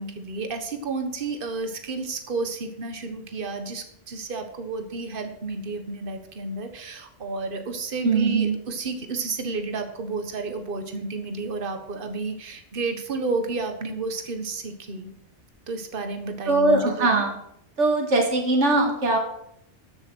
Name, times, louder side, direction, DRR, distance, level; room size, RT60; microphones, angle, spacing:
voice 1, 0.0-15.1 15.7-17.2, right 3 dB, 45° right, 7 dB, 1.5 m, -31 dB
voice 2, 8.0-8.6 16.5-17.4 17.8-19.2, right 2 dB, 70° right, 2 dB, 2.1 m, -21 dB
13.5 x 6.9 x 6.2 m, 0.73 s
omnidirectional pair, 1.3 m